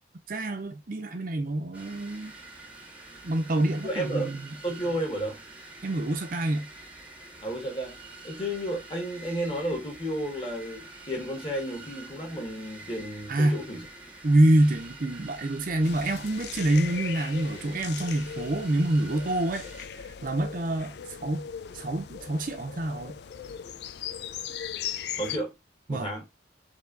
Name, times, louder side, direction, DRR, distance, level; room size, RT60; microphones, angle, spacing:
voice 1, 0.3-2.4 3.2-4.4 5.8-6.7 13.3-13.6 14.2-19.7 20.2-20.9 21.2-21.4 21.7-23.2 25.9-26.1, right 1 dB, 45° right, 0.6 m, -26 dB
sound 1, 1.7-19.9, right 2 dB, 10° right, 0.9 m, -47 dB
voice 2, 3.8-4.3 4.6-5.4 7.4-13.9 25.1-25.5 25.9-26.3, right 1 dB, 30° left, 1.7 m, -32 dB
sound 2, 15.8-25.4, left 8 dB, 60° left, 0.4 m, -39 dB
4.6 x 2.9 x 2.6 m
head